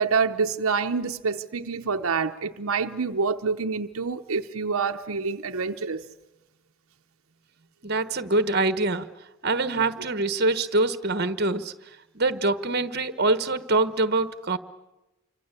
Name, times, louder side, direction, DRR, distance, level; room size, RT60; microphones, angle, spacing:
voice 1, 0.0-6.0, right 5 dB, 75° right, 0.9 m, -27 dB
voice 2, 7.8-9.1 9.4-11.7 12.1-14.6, right 2 dB, 45° right, 1.3 m, -24 dB
28.5 x 25.0 x 8.3 m
head